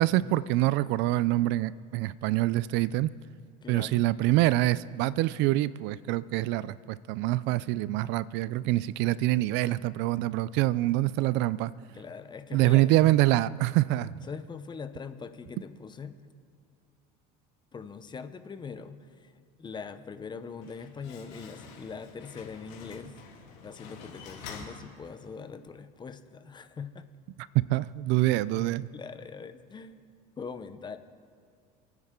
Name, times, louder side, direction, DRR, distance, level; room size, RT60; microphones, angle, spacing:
voice 1, 0.0-3.1 3.7-11.7 12.5-14.2 27.5-28.9, right 16 dB, 65° right, 19 dB, 0.4 m, -25 dB
voice 2, 3.6-4.0 11.9-12.9 14.2-16.2 17.7-23.2 23.6-27.1 28.9-30.0 30.4-31.0, left 5 dB, 20° left, 10 dB, 0.8 m, -42 dB
Slam, 20.4-25.5, left 5 dB, 75° left, 3.3 m, -47 dB
28.0 x 9.6 x 3.8 m, 2.3 s
supercardioid pair, 115°, 20 cm